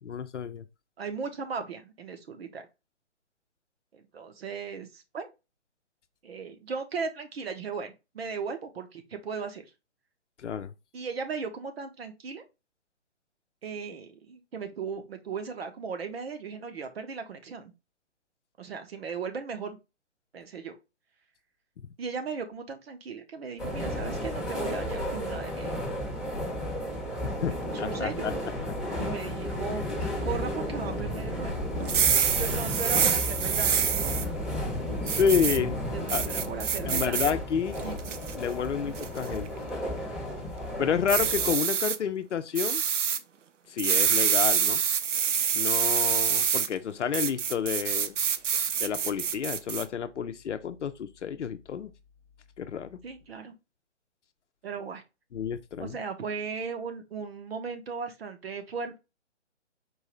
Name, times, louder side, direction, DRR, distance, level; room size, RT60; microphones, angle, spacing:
voice 1, 0.1-0.6 10.4-10.7 27.2-28.3 35.0-35.8 36.1-36.2 36.8-37.8 38.3-39.7 40.8-42.8 43.7-44.8 45.5-48.2 48.8-51.9 52.6-53.0 55.3-56.0, left 7 dB, 75° left, 0.6 m, -30 dB
voice 2, 1.0-2.6 3.9-5.3 6.2-9.7 10.9-12.4 13.6-17.7 18.6-19.8 20.3-20.8 22.0-25.7 27.5-28.1 29.0-29.8 30.2-31.6 32.3-33.8 35.9-37.2 37.8-38.0 53.0-53.5 54.6-55.0 55.8-59.0, right 5 dB, 55° right, 1.0 m, -37 dB
sound 1, 23.6-41.6, left 1 dB, ahead, 0.9 m, -33 dB
sound 2, 31.8-34.3 35.1-35.6 36.1-37.3 37.8-38.4 39.0-39.3 41.1-42.0 42.6-43.2 43.8-46.7 47.1-49.8, right 7 dB, 85° right, 0.6 m, -26 dB
4.6 x 2.7 x 3.2 m
hypercardioid pair, 145°, 36 cm